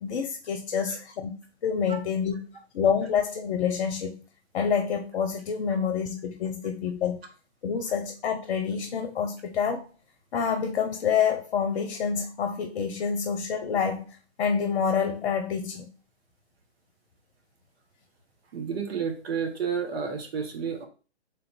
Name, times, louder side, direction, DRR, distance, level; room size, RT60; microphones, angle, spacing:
voice 1, 0.0-1.4 1.6-2.4 2.7-4.2 4.5-7.2 7.6-9.8 10.3-14.1 14.4-15.9, left 7 dB, 55° left, 0.7 m, -27 dB
voice 2, 18.5-20.9, right 6 dB, 60° right, 1.1 m, -31 dB
3.3 x 2.6 x 4.4 m
hypercardioid pair, 130°, 34 cm